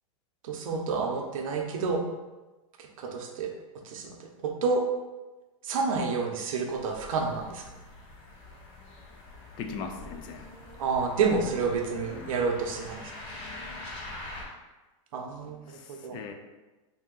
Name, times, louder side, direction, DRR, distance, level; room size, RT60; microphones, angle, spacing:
voice 1, 0.4-2.0 2.8-3.5 3.8-4.8 5.6-7.6 10.8-13.0 15.1-16.2, right 4 dB, 85° right, 3 dB, 0.7 m, -29 dB
sound 1, 6.7-14.4, left 2 dB, 50° left, 1.2 m, -44 dB
voice 2, 9.6-10.5 15.7-16.3, left 5 dB, 25° left, 5 dB, 0.4 m, -39 dB
3.6 x 2.7 x 3.8 m, 1.2 s
supercardioid pair, 155°, 17 cm